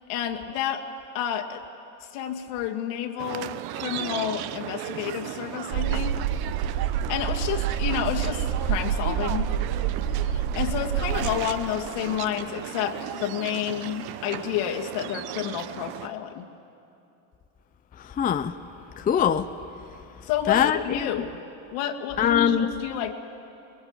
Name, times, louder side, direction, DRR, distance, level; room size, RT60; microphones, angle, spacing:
voice 1, 0.1-0.9 1.1-1.6 2.1-6.2 7.1-9.5 10.1-16.5 20.2-21.4 21.7-23.1, left 9 dB, 70° left, 3 dB, 2.2 m, -30 dB
sound 1, 3.2-16.1, right 13 dB, 55° right, 0.9 m, -36 dB
sound 2, 5.7-11.4, right 9 dB, 80° right, 1.9 m, -27 dB
voice 2, 18.0-18.5 19.0-19.5 20.5-21.1 22.2-22.7, left 8 dB, 20° left, 10 dB, 0.6 m, -22 dB
23.0 x 22.0 x 8.9 m, 2.8 s
supercardioid pair, 125°, 47 cm